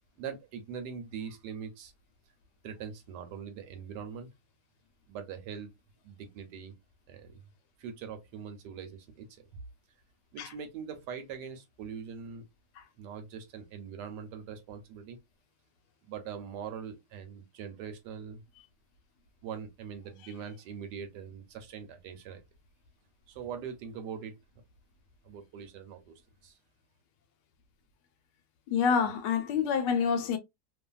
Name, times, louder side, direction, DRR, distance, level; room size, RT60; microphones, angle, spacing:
voice 1, 0.2-1.9 2.6-4.3 5.1-5.7 6.0-6.7 7.1-7.4 7.8-9.5 10.3-12.4 13.0-15.2 16.0-18.4 19.4-22.4 23.3-24.4 25.2-26.6, right 7 dB, 75° right, 1.2 m, -42 dB
voice 2, 28.7-30.4, left 6 dB, 75° left, 1.2 m, -27 dB
2.7 x 2.5 x 2.3 m
omnidirectional pair, 2.0 m